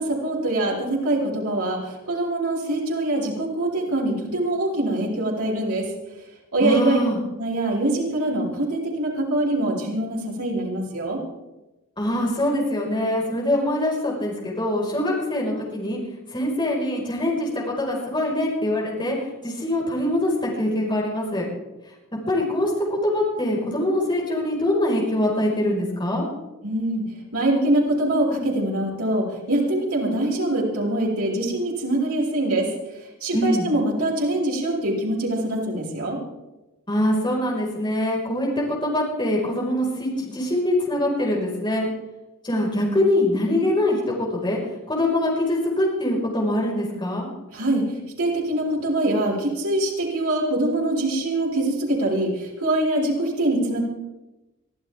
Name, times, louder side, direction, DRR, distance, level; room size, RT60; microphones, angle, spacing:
voice 1, 0.0-5.9 6.5-7.0 7.4-11.2 26.6-27.0 27.3-32.7 33.2-36.2 47.5-53.8, right 1 dB, 80° right, -4 dB, 5.9 m, -24 dB
voice 2, 6.6-7.2 12.0-16.0 16.3-19.2 19.4-21.5 22.3-26.2 33.3-33.7 36.9-41.9 42.4-44.6 44.9-47.3, left 1 dB, 20° left, -3 dB, 5.2 m, -23 dB
24.0 x 14.5 x 3.7 m, 1.0 s
head